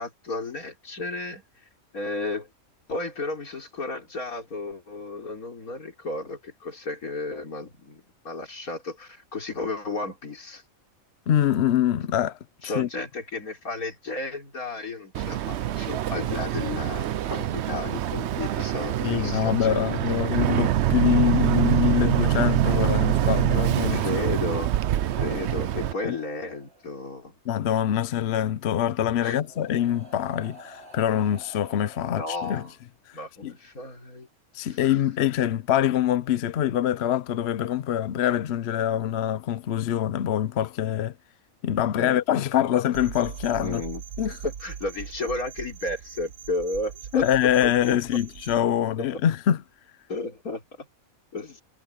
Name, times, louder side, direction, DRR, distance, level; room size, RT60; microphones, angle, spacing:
voice 1, 0.0-1.4 1.9-2.5 2.9-10.6 12.6-20.2 23.9-24.8 25.2-27.4 29.2-29.4 32.1-32.7 33.1-34.3 34.6-34.8 42.0-42.2 43.6-48.0 49.0-49.1 50.1-50.9 51.3-51.6, left 3 dB, 85° left, 4.2 m, -33 dB
voice 2, 11.3-12.9 19.0-24.1 26.0-26.1 27.5-32.6 33.4-33.5 34.5-41.1 41.6-43.8 44.2-44.4 47.1-49.6, left 10 dB, 55° left, 0.8 m, -24 dB
Boat Water vehicle, 15.1-25.9, right 12 dB, 65° right, 0.8 m, -25 dB
sound 1, 25.0-27.2 28.5-28.6 29.3-32.9 34.0-34.2, right 1 dB, 45° right, 4.2 m, -49 dB
sound 2, 42.9-48.6, right 8 dB, 85° right, 1.4 m, -40 dB
omnidirectional pair, 1.5 m